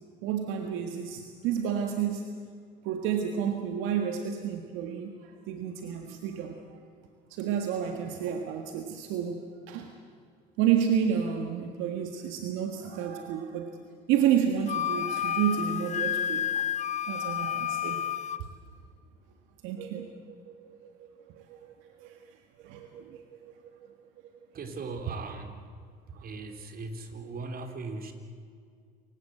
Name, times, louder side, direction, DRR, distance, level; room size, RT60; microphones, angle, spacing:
voice 1, 0.2-2.2 2.8-6.8 7.3-9.9 10.6-13.8 14.1-16.7 17.1-18.1 18.4-18.5 19.6-21.6 22.0-22.2 22.6-23.8 26.1-26.3, right 8 dB, 70° right, 5 dB, 1.8 m, -31 dB
Wind instrument woodwind instrument, 14.7-18.4, left 9 dB, 35° left, 0.9 m, -30 dB
voice 2, 24.5-25.6 26.1-28.1, right 3 dB, 45° right, 6 dB, 3.6 m, -39 dB
28.0 x 17.0 x 7.9 m, 2.1 s
hypercardioid pair, 70°, 21 cm